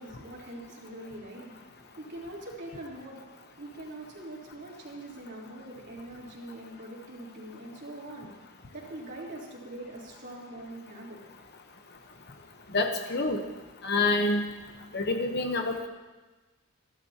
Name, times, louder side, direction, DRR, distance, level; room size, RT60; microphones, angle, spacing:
voice 1, 0.0-8.4 8.7-11.2, right 1 dB, 50° right, -4 dB, 3.8 m, -43 dB
voice 2, 12.7-13.4 13.8-14.4 14.9-15.9, left 2 dB, 50° left, 4 dB, 1.0 m, -27 dB
29.5 x 12.5 x 2.9 m, 1.2 s
head